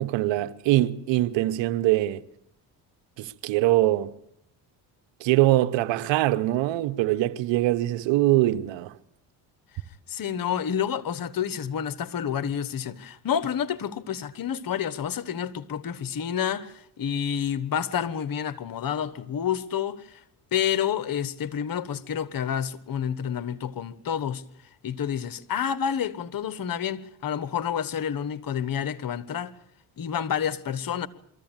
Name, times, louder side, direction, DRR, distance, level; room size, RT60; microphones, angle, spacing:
voice 1, 0.0-2.2 3.2-4.1 5.2-8.9, right 15 dB, 80° right, 1.0 m, -23 dB
voice 2, 10.1-20.2 20.5-24.4 24.8-29.5 30.0-31.1, left 8 dB, 50° left, 1.3 m, -29 dB
23.5 x 14.5 x 9.0 m
supercardioid pair, 75°, 44 cm